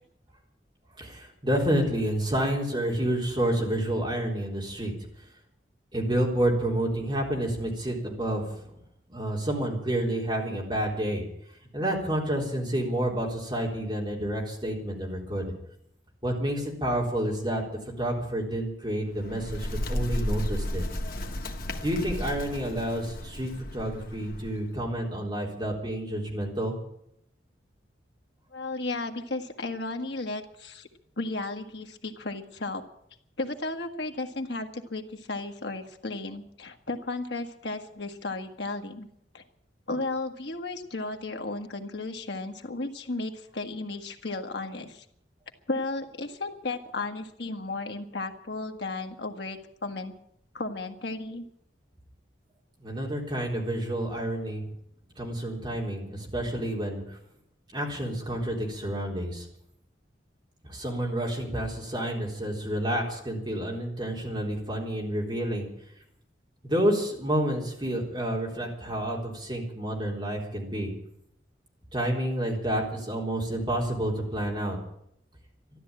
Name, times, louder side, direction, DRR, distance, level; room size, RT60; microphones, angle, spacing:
voice 1, 1.0-4.9 5.9-8.7 9.1-11.2 11.7-15.5 16.2-17.6 18.0-20.8 21.8-26.7 52.8-54.6 55.2-57.2 57.7-59.5 60.6-65.7 66.6-70.9 71.9-74.8, right 1 dB, 25° right, -2 dB, 3.9 m, -29 dB
Bird, 19.0-24.7, left 1 dB, 50° left, 1.6 m, -33 dB
voice 2, 28.5-30.9 31.2-32.8 33.4-39.1 39.3-39.4 39.9-45.0 45.7-50.1 50.5-51.4, left 2 dB, 70° left, 4 dB, 1.6 m, -34 dB
13.0 x 12.0 x 8.8 m, 0.73 s
head